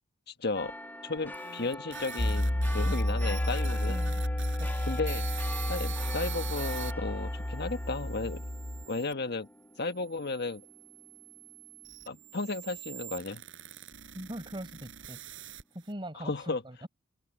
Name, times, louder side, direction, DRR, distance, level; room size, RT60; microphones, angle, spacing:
voice 1, 0.3-0.7 1.0-4.0 4.9-5.3 5.7-8.4 8.9-9.5 9.8-10.6 12.1-13.4 16.1-16.6, left 3 dB, 55° left, 1.6 m, -34 dB
sound 1, 0.5-11.3 11.7-11.8, left 2 dB, 10° left, 2.2 m, -43 dB
sound 2, 1.2-6.9 7.6-9.1 9.9-15.9, right 12 dB, 65° right, 4.6 m, -45 dB
sound 3, 2.2-8.8, left 1 dB, 35° left, 1.1 m, -31 dB
voice 2, 3.9-4.2 4.6-4.9 14.1-15.5 15.7-16.9, right 1 dB, 25° right, 4.9 m, -42 dB
head